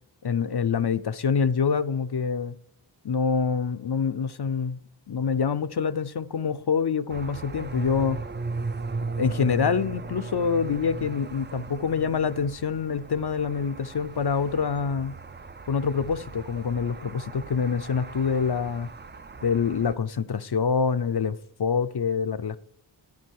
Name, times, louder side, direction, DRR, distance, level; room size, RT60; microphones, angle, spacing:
voice 1, 0.2-2.5 3.0-4.8 5.1-8.2 9.2-15.2 15.7-18.9 19.4-22.6, left 6 dB, 55° left, 0.6 m, -26 dB
sound 1, 7.1-19.9, right 3 dB, 25° right, 0.4 m, -37 dB
13.5 x 5.3 x 4.6 m
wide cardioid pair, 45°, 46 cm